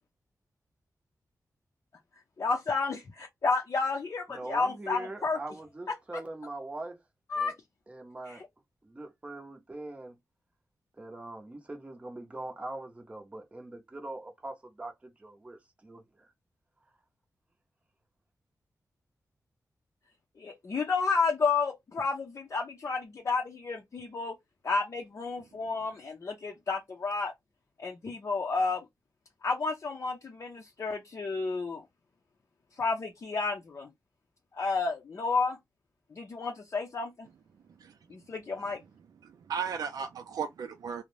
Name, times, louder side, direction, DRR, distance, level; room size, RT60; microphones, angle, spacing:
voice 1, 2.4-5.4 7.3-7.5 8.3-8.5 20.4-24.3 24.6-27.3 27.8-28.8 29.4-31.8 32.8-33.9 34.5-35.6 36.1-37.3 38.1-38.8, left 4 dB, 50° left, 0.5 m, -31 dB
voice 2, 4.3-7.0 7.4-7.6 7.9-8.4 8.8-10.2 11.0-16.3, right 2 dB, 20° right, 0.7 m, -42 dB
voice 3, 37.7-38.2 38.6-38.8 39.2-41.0, right 7 dB, 80° right, 0.3 m, -36 dB
2.5 x 2.1 x 3.1 m
wide cardioid pair, 95°, 6 cm